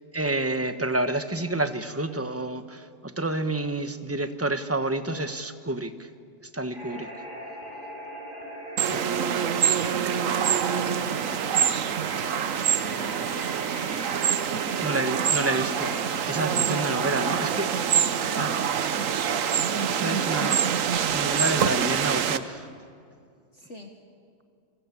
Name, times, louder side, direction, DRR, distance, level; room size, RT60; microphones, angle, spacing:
voice 1, 0.1-6.1 6.5-7.1 8.9-9.0 14.8-17.7 18.3-18.6 19.9-20.5 21.1-22.7, right 2 dB, 10° right, 9 dB, 0.8 m, -29 dB
sound 1, 6.7-21.2, equal, 30° right, 7.1 m, -40 dB
sound 2, 8.8-22.4, right 8 dB, 55° right, 1.1 m, -26 dB
voice 2, 9.0-14.1 14.7-15.3 20.1-20.8 23.5-23.9, left 1 dB, 40° left, 4 dB, 1.8 m, -44 dB
28.5 x 22.5 x 8.5 m, 2.4 s
omnidirectional pair, 1.9 m